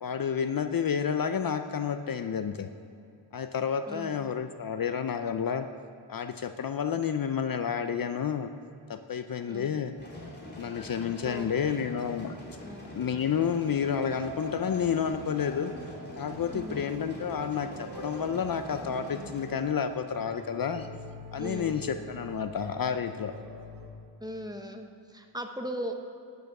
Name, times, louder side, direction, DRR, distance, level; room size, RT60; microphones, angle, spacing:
voice 1, 0.0-2.7 3.3-5.7 6.1-8.5 8.9-9.9 10.6-12.4 12.9-15.7 16.2-20.9 21.3-23.3, left 7 dB, 50° left, 9 dB, 0.5 m, -30 dB
voice 2, 3.9-4.3 9.5-9.8 11.2-11.8 12.6-12.9 16.5-16.8 21.4-21.9 24.2-25.9, equal, 10° right, 4 dB, 0.9 m, -39 dB
sound 1, 10.0-19.4, left 1 dB, 25° left, 2.8 m, -44 dB
sound 2, 14.1-23.9, equal, 60° right, 1.3 m, -44 dB
10.5 x 9.3 x 5.9 m, 2.6 s
wide cardioid pair, 105°, 44 cm